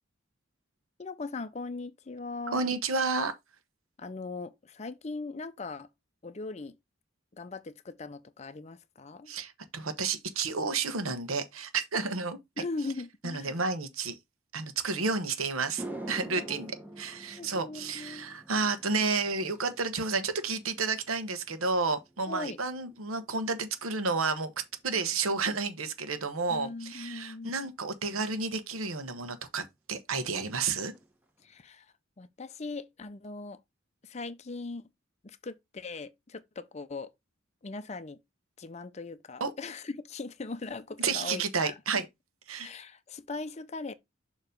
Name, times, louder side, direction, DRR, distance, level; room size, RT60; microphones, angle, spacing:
voice 1, 1.0-2.6 4.0-5.9 6.2-6.8 7.3-9.3 12.6-13.5 16.4-16.7 17.4-18.4 22.3-22.6 26.5-27.6 31.4-33.6 34.0-34.9 35.2-37.1 37.6-38.2 38.6-41.8 42.6-43.9, left 3 dB, 35° left, 0.5 m, -40 dB
voice 2, 2.5-3.3 9.3-12.4 13.2-14.2 14.5-24.5 24.8-29.6 29.9-30.9 39.4-39.5 41.0-42.0 42.5-42.7, right 4 dB, 85° right, 1.0 m, -31 dB
sound 1, 15.8-24.1 24.4-24.8 28.4-28.5 30.1-30.2 30.5-30.7 30.9-31.5, right 1 dB, 10° right, 0.9 m, -47 dB
6.8 x 3.0 x 5.1 m
head